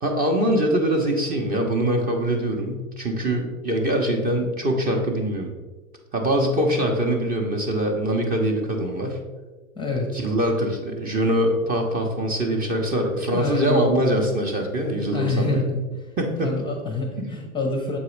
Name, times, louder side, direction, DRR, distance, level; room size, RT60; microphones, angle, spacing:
voice 1, 0.0-5.5 6.1-9.2 10.1-15.6 16.2-16.6, right 1 dB, 20° right, 2 dB, 0.9 m, -23 dB
voice 2, 9.8-10.2 13.3-13.9 15.1-15.9 16.4-18.0, left 2 dB, 10° left, 1 dB, 0.7 m, -26 dB
7.1 x 4.7 x 3.2 m, 1.3 s
hypercardioid pair, 100°, 42 cm